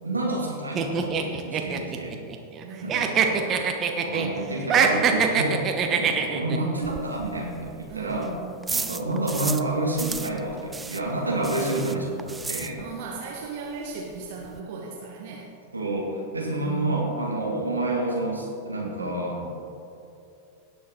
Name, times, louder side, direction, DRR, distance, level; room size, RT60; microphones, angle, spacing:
voice 1, 0.0-2.2 2.8-3.5 4.0-8.4 8.7-12.8 15.7-19.5, right 2 dB, 80° right, -2 dB, 2.1 m, -29 dB
sound 1, 0.8-2.6 2.9-4.3 4.6-6.6, right 6 dB, 30° right, 1.0 m, -23 dB
voice 2, 2.6-4.0 7.9-9.2 12.8-15.5 16.5-17.1, right 4 dB, 50° right, -1 dB, 1.3 m, -38 dB
sound 2, 6.8-9.7 10.0-13.2 13.4-13.5 13.9-14.0 14.1-14.6, right 4 dB, 10° right, 0.4 m, -35 dB
17.5 x 6.9 x 3.9 m, 2.7 s
figure-of-eight pair, 90°, 0 cm